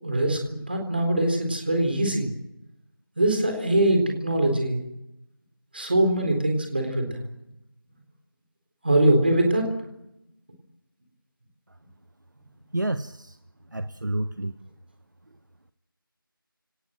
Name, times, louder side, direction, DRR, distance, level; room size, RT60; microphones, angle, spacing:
voice 1, 0.0-2.3 3.2-4.8 5.7-7.2 8.8-9.7, right 1 dB, 25° right, 4 dB, 4.0 m, -22 dB
voice 2, 12.7-13.4 13.7-14.6, right 1 dB, 55° right, 11 dB, 1.2 m, -29 dB
29.5 x 18.5 x 7.7 m, 0.88 s
figure-of-eight pair, 175°, 12 cm